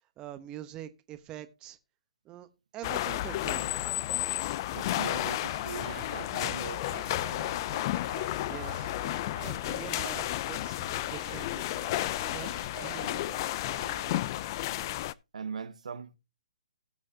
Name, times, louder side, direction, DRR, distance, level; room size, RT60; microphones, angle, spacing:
voice 1, 0.2-1.8 2.2-2.5 2.7-3.7 8.5-10.8 11.1-11.7 12.3-12.5 12.8-13.5, right 12 dB, 20° right, 1.0 m, -44 dB
sound 1, 2.8-15.1, left 15 dB, 35° left, 0.5 m, -32 dB
voice 2, 4.7-6.9 8.3-8.4 15.3-16.2, right 6 dB, 75° right, 1.0 m, -40 dB
sound 2, 5.2-14.9, right 11 dB, 45° right, 1.1 m, -50 dB
17.5 x 6.4 x 2.7 m
hypercardioid pair, 140°, 4 cm